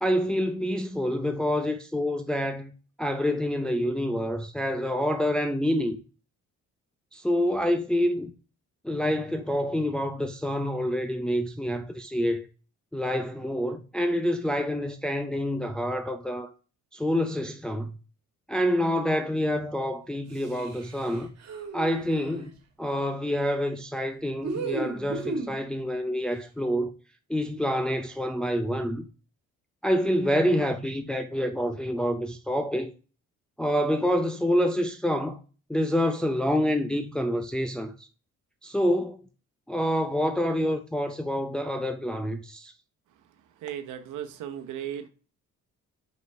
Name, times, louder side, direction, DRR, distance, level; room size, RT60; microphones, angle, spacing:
voice 1, 0.0-2.7 3.0-6.0 7.1-8.3 8.8-12.5 12.9-16.5 16.9-17.9 18.5-21.3 21.7-22.5 22.8-26.9 27.3-29.0 29.8-32.9 33.6-35.4 35.7-38.1 38.6-39.2 39.7-42.7, equal, 5° left, 0.6 m, -27 dB
sound 1, 20.3-22.5 24.4-25.6, right 3 dB, 60° right, 1.9 m, -35 dB
voice 2, 43.6-45.1, right 10 dB, 85° right, 1.0 m, -36 dB
5.3 x 4.2 x 5.4 m
cardioid pair, 90°, 30 cm